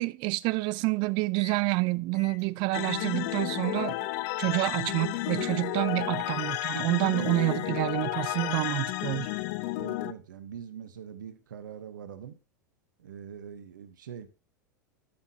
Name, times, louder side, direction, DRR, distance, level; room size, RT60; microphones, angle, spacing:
voice 1, 0.0-4.1 4.4-9.3, right 21 dB, 50° right, 0.5 m, -28 dB
Microwave oven, 1.3-1.6 2.1-9.0, left 7 dB, 30° left, 3.9 m, -51 dB
sound 1, 2.7-10.1, left 18 dB, 55° left, 0.6 m, -32 dB
voice 2, 9.8-12.4 13.0-14.3, right 8 dB, 80° right, 1.0 m, -43 dB
12.0 x 6.0 x 2.8 m
hypercardioid pair, 90°, 10 cm